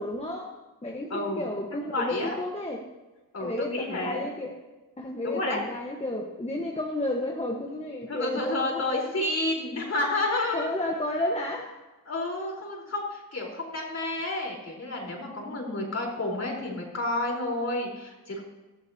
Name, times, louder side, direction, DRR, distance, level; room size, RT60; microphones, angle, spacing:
voice 1, 0.0-2.8 3.4-4.5 5.0-9.1 10.5-11.8, left 1 dB, 15° left, 0 dB, 1.3 m, -32 dB
voice 2, 1.1-1.5 1.9-2.3 3.3-4.2 5.2-5.6 8.1-10.7 12.1-18.4, left 2 dB, 45° left, -2 dB, 4.2 m, -30 dB
18.0 x 14.0 x 2.9 m, 1.1 s
wide cardioid pair, 105°, 36 cm